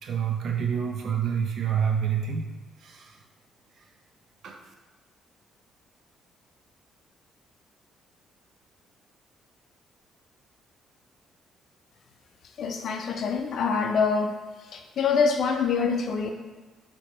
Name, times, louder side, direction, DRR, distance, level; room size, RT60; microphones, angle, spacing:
voice 1, 0.0-2.5 2.8-3.2 4.4-4.6, right 7 dB, 60° right, 2 dB, 0.4 m, -27 dB
voice 2, 12.6-16.3, left 5 dB, 60° left, 5 dB, 0.3 m, -25 dB
4.1 x 2.1 x 3.1 m, 1.2 s
cardioid pair, 115°, 0 cm